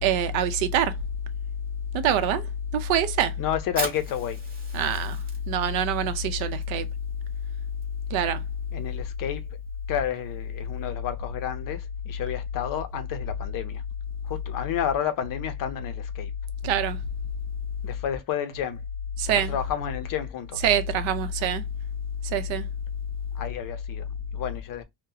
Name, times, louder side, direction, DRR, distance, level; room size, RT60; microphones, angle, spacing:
voice 1, 0.0-0.9 1.9-2.5 2.7-3.3 4.7-5.2 5.5-6.9 8.1-8.4 16.6-17.0 19.2-19.6 20.6-21.6 22.3-22.6, right 6 dB, 80° right, 0.7 m, -24 dB
voice 2, 3.4-4.4 8.7-9.4 9.9-13.8 14.2-16.3 17.8-18.8 19.3-20.6 23.3-24.8, left 10 dB, 45° left, 0.5 m, -31 dB
Fire, 3.6-10.8, right 2 dB, 20° right, 0.8 m, -41 dB
2.7 x 2.1 x 3.8 m
cardioid pair, 180°, 46 cm